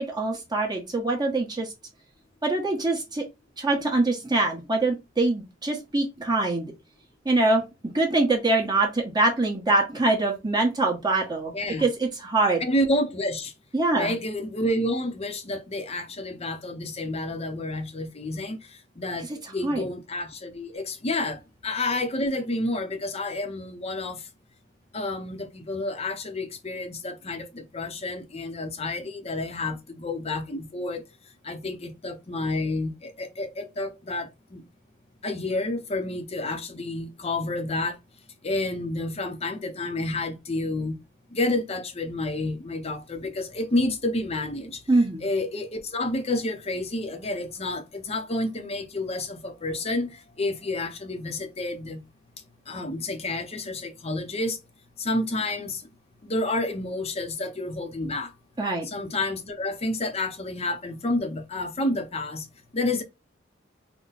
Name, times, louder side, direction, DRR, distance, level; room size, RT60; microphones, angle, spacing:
voice 1, 0.0-1.7 2.4-3.2 3.6-6.7 7.2-7.6 7.9-11.5 11.8-12.6 13.7-14.1 19.6-19.9 44.9-45.3 58.6-58.9, right 2 dB, 25° right, 1.1 m, -24 dB
voice 2, 11.5-11.9 12.6-13.5 13.9-24.3 24.9-31.0 31.4-34.6 35.2-38.0 38.4-40.9 41.3-44.8 45.2-52.0 52.7-54.6 55.0-55.8 56.2-58.3 58.8-62.5 62.7-63.0, left 2 dB, 35° left, 0.7 m, -29 dB
4.0 x 2.1 x 3.9 m
head